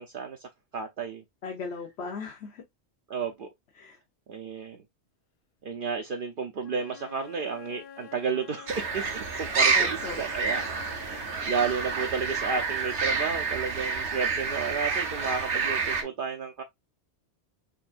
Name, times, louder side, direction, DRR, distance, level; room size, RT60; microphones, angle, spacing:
voice 1, 0.0-1.2 3.1-3.5 4.3-4.8 5.6-16.6, right 5 dB, 60° right, 0.7 m, -32 dB
voice 2, 1.4-2.6 3.8-4.0 9.7-10.2, left 4 dB, 70° left, 1.2 m, -37 dB
Wind instrument woodwind instrument, 6.6-11.6, left 8 dB, 55° left, 0.9 m, -47 dB
sound 1, 8.7-16.0, right 4 dB, 90° right, 1.4 m, -28 dB
5.3 x 2.6 x 2.4 m
omnidirectional pair, 1.1 m